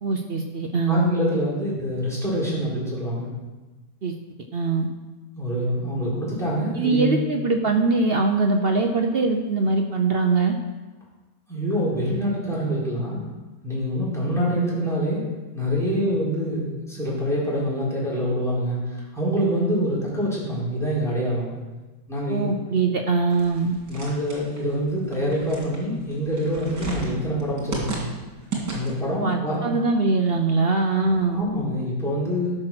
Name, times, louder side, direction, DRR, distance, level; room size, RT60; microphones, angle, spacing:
voice 1, 0.0-1.1 4.0-4.1 4.5-4.9 6.8-10.6 22.3-23.7 29.2-31.4, right 3 dB, 55° right, 4 dB, 0.6 m, -22 dB
voice 2, 0.9-3.3 5.4-7.2 11.5-13.2 13.6-15.2 15.5-21.5 22.1-22.6 23.9-28.0 28.7-29.8 31.0-32.5, equal, ahead, -8 dB, 4.2 m, -25 dB
sound 1, 23.3-29.1, right 3 dB, 85° right, 3.2 m, -34 dB
12.5 x 6.1 x 6.0 m, 1.2 s
omnidirectional pair, 1.8 m